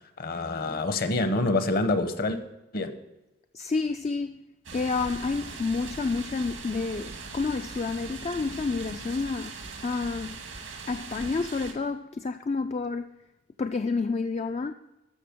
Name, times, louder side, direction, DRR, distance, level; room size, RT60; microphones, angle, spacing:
voice 1, 0.2-2.4 2.7-2.9, left 2 dB, 50° left, 0.9 m, -26 dB
voice 2, 3.5-4.4 4.7-10.4 10.9-13.1 13.6-14.7, left 4 dB, 35° left, 0.3 m, -29 dB
sound 1, 4.6-11.7, right 4 dB, 90° right, 1.9 m, -40 dB
13.0 x 7.0 x 5.1 m
head